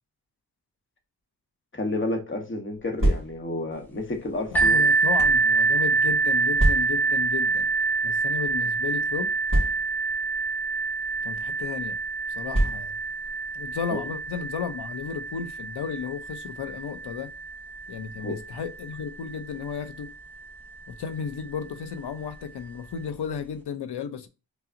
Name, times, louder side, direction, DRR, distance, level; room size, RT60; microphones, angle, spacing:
voice 1, 1.7-4.8 18.2-18.4, left 2 dB, 30° left, 0.9 m, -30 dB
sound 1, 2.8-3.6 4.4-5.4 6.6-7.2 8.0-8.2 8.5-8.6 9.5-10.1 11.0-11.2 12.5-13.1, right 1 dB, 30° right, 1.6 m, -26 dB
voice 2, 4.5-7.7 8.0-9.3 11.2-12.0 12.3-13.0 13.5-17.3 17.9-20.1 20.9-24.3, left 7 dB, 85° left, 0.6 m, -34 dB
sound 2, 4.5-20.1 20.9-21.0 21.5-21.6, right 4 dB, 5° left, 0.6 m, -26 dB
5.5 x 2.0 x 2.5 m
wide cardioid pair, 100°, 38 cm